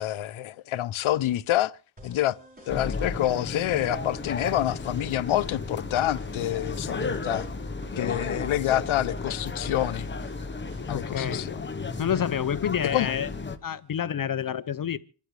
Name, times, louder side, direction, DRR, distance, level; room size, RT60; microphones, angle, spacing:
voice 1, 0.0-1.8 2.0-2.4 2.7-7.5 8.0-10.1 10.9-11.7 12.9-13.1, left 13 dB, 90° left, 0.7 m, -27 dB
sound 1, 2.0-11.6, equal, 20° right, 5.2 m, -50 dB
sound 2, 2.7-13.6, left 4 dB, 25° left, 1.0 m, -34 dB
voice 2, 10.9-11.4 12.0-13.3 13.6-15.0, left 9 dB, 45° left, 0.6 m, -28 dB
27.0 x 12.0 x 3.2 m
wide cardioid pair, 160°, 47 cm